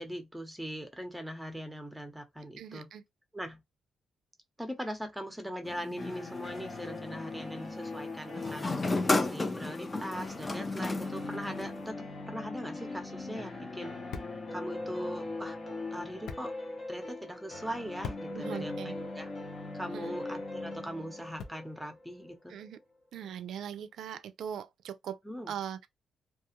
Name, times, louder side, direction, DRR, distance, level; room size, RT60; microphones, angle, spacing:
voice 1, 0.0-2.9 3.3-3.6 4.6-8.7 9.2-11.9 12.3-14.0 14.5-15.6 15.9-16.5 16.9-19.3 19.7-22.6 25.2-25.5, equal, 5° right, 0.7 m, -40 dB
voice 2, 2.6-3.0 18.3-18.9 19.9-20.2 22.5-22.8 23.1-25.2 25.5-25.9, right 9 dB, 80° right, 0.4 m, -40 dB
sound 1, 5.6-6.9 8.4-11.9, left 2 dB, 25° left, 0.4 m, -33 dB
sound 2, 6.0-22.7, left 2 dB, 45° left, 0.8 m, -41 dB
basketball catch, 12.9-21.9, left 5 dB, 80° left, 0.5 m, -49 dB
2.4 x 2.3 x 2.8 m
cardioid pair, 105°, 0 cm